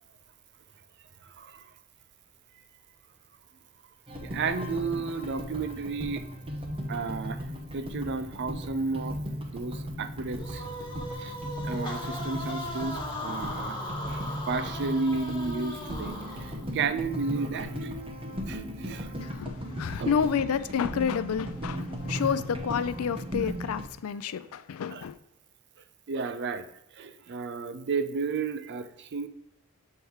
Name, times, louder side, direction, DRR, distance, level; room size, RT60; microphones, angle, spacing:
voice 1, 1.2-1.7 4.2-6.2 6.9-7.4 7.7-9.2 9.5-10.6 11.2-11.4 11.6-13.8 14.0-18.0 18.5-19.1 20.0-20.2 22.1-22.2 24.9-25.0 26.1-26.7 26.9-29.3, right 4 dB, 55° right, 0.5 m, -32 dB
sound 1, 4.1-23.8, equal, 25° right, 0.8 m, -37 dB
sound 2, 10.4-16.7, left 1 dB, 20° left, 1.1 m, -38 dB
voice 2, 19.2-25.2, left 7 dB, 75° left, 0.4 m, -29 dB
7.2 x 3.3 x 4.6 m
head